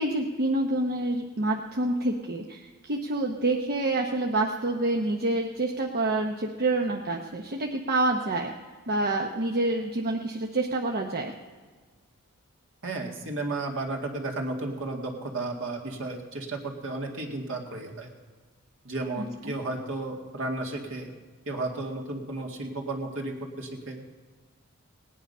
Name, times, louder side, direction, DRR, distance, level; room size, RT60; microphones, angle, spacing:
voice 1, 0.0-8.5 8.9-11.3 19.2-19.5, right 2 dB, 45° right, 1 dB, 0.9 m, -27 dB
voice 2, 12.8-18.1 18.8-21.1 21.5-24.0, right 2 dB, 60° right, 2 dB, 2.2 m, -33 dB
18.5 x 9.9 x 5.5 m, 1.4 s
head